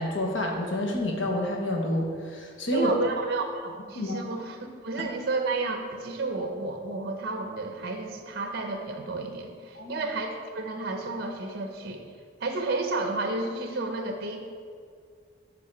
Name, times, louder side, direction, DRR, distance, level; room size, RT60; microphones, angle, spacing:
voice 1, 0.0-2.9 3.9-4.2 9.7-10.0, left 1 dB, 80° left, 0 dB, 1.2 m, -28 dB
voice 2, 2.7-12.1 12.4-14.4, right 3 dB, 55° right, 4 dB, 0.7 m, -31 dB
7.6 x 3.8 x 5.9 m, 2.1 s
head